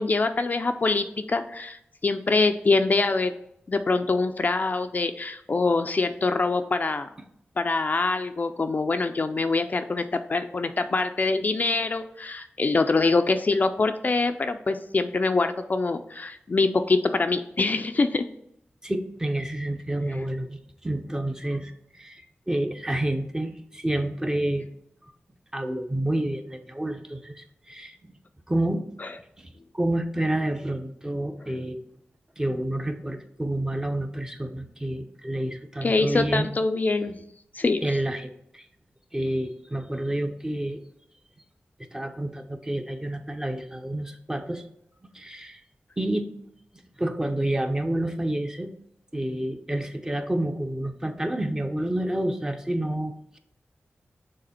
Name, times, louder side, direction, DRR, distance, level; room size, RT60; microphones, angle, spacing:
voice 1, 0.0-3.3 3.7-7.1 7.6-18.2 29.0-29.1 35.8-37.2 37.5-37.9, left 3 dB, 40° left, 8 dB, 0.4 m, -24 dB
voice 2, 18.8-24.6 25.5-28.1 28.5-28.8 29.4-31.8 32.4-36.5 37.8-38.6 39.1-40.8 41.9-44.6 45.1-45.6 46.0-46.3 47.0-48.7 49.1-53.4, right 1 dB, 15° right, 6 dB, 0.6 m, -29 dB
6.6 x 3.5 x 4.2 m, 0.77 s
wide cardioid pair, 95°, 4 cm